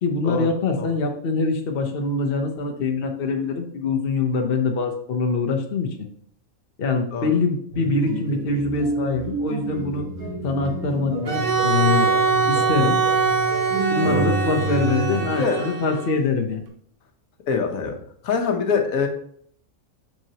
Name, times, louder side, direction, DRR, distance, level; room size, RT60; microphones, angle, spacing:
voice 1, 0.0-5.9 6.8-10.1 10.4-12.1 12.5-13.0 13.9-16.6, left 3 dB, 50° left, 3 dB, 0.9 m, -24 dB
sound 1, 7.7-15.3, right 2 dB, 85° right, 1.9 m, -29 dB
Bowed string instrument, 11.2-16.2, right 5 dB, 45° right, 0.9 m, -23 dB
voice 2, 15.4-15.7 17.5-17.9 18.2-19.1, left 5 dB, 80° left, 5 dB, 1.3 m, -24 dB
6.0 x 5.8 x 2.8 m, 0.62 s
omnidirectional pair, 1.5 m